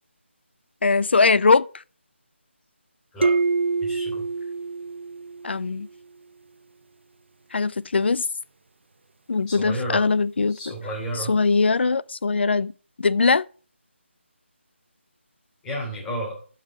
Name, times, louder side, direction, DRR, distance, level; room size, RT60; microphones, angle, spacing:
voice 1, 0.8-1.7 5.4-5.9 7.5-8.3 9.3-10.7 11.2-12.7 13.0-13.4, left 4 dB, 60° left, 0.5 m, -21 dB
sound 1, 3.2-5.8, right 4 dB, 65° right, 0.7 m, -25 dB
voice 2, 3.8-4.2 9.5-10.0 10.5-11.3 15.6-16.3, right 1 dB, 10° left, 3.1 m, -31 dB
12.5 x 5.6 x 4.8 m
figure-of-eight pair, 165°, 7 cm